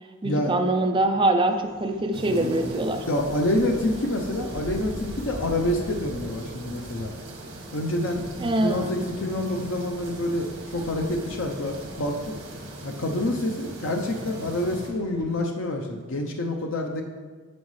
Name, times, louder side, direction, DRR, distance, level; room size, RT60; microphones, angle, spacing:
voice 1, 0.2-3.0 8.4-9.0, right 2 dB, 20° right, 5 dB, 0.4 m, -24 dB
sound 1, 1.5-15.3, equal, 45° right, 1.9 m, -44 dB
sound 2, 2.1-14.9, right 1 dB, 75° right, 1.6 m, -39 dB
voice 2, 3.1-7.1 7.7-8.2 8.6-12.3 12.8-17.0, left 1 dB, 70° left, 2 dB, 0.6 m, -27 dB
9.4 x 6.2 x 3.2 m, 1.5 s
head